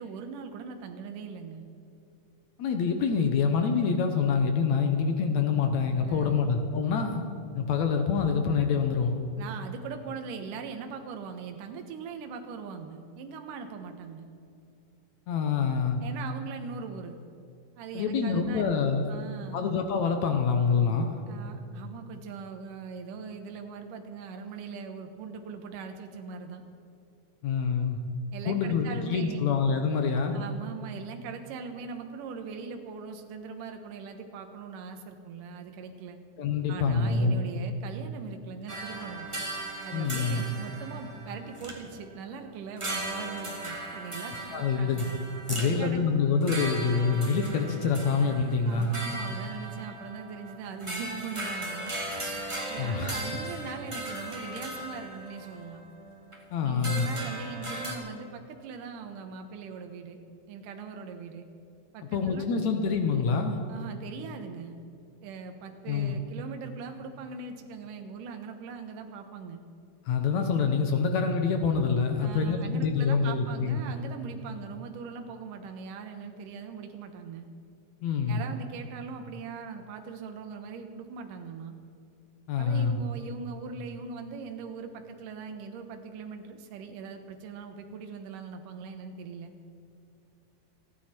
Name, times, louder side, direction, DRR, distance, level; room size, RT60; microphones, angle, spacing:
voice 1, 0.0-1.7 6.0-6.5 9.4-14.3 16.0-17.2 17.8-18.7 19.1-19.6 21.3-26.6 28.3-29.5 30.3-36.2 36.7-39.3 39.8-45.2 45.6-46.0 48.6-51.9 52.7-55.8 56.6-60.2 60.5-61.5 61.9-62.6 63.7-64.8 65.2-69.6 72.2-77.5 78.3-81.7 82.6-89.5, right 5 dB, 70° right, 5 dB, 2.6 m, -41 dB
voice 2, 2.6-7.2 7.5-9.2 15.3-16.0 17.9-19.1 19.5-21.2 27.4-28.0 28.5-30.4 36.4-37.5 39.9-40.4 44.5-45.1 45.5-48.9 52.8-53.2 53.7-53.8 56.5-57.1 62.1-63.6 65.9-66.2 70.1-73.8 78.0-78.4 82.5-83.0, left 5 dB, 65° left, 5 dB, 1.9 m, -26 dB
sound 1, 38.7-42.3 42.8-56.4 56.8-57.9, right 1 dB, 15° right, 1.1 m, -38 dB
29.0 x 9.7 x 4.4 m, 2.6 s
omnidirectional pair, 4.2 m